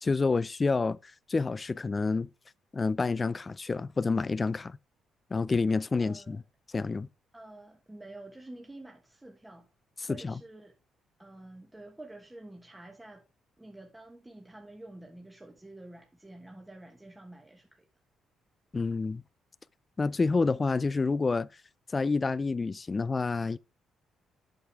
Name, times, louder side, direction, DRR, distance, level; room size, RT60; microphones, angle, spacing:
voice 1, 0.0-2.3 2.7-4.8 5.3-6.4 6.7-7.1 10.0-10.4 18.7-19.2 20.0-21.5 21.9-23.6, left 4 dB, 30° left, 0.4 m, -28 dB
voice 2, 6.0-6.4 7.3-9.7 10.1-10.7 11.2-13.2 13.6-17.8, right 2 dB, 10° right, 1.3 m, -48 dB
8.2 x 6.6 x 3.5 m
cardioid pair, 90°, 0 cm